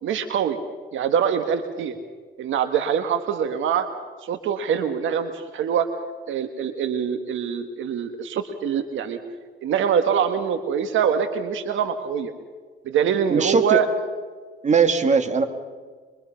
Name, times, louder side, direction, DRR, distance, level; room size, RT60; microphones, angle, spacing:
voice 1, 0.0-0.6 0.9-1.9 2.4-3.9 4.2-5.9 6.3-9.2 9.6-12.3 12.8-13.9, right 8 dB, 75° right, 8 dB, 1.6 m, -24 dB
voice 2, 13.3-13.8 14.6-15.4, right 5 dB, 35° right, 7 dB, 2.4 m, -19 dB
24.5 x 23.5 x 5.8 m, 1.5 s
cardioid pair, 90°, 20 cm